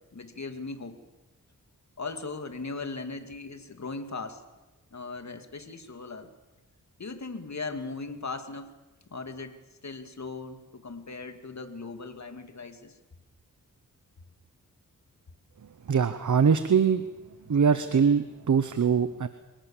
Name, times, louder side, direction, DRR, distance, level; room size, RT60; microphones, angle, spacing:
voice 1, 0.1-1.0 2.0-4.4 4.9-6.3 7.0-8.7 9.1-9.6 9.8-13.0, left 3 dB, 55° left, 7 dB, 2.5 m, -38 dB
voice 2, 15.9-17.1 17.5-19.3, right 6 dB, 60° right, 11 dB, 1.0 m, -23 dB
25.0 x 17.5 x 7.3 m, 1.1 s
cardioid pair, 60°, 34 cm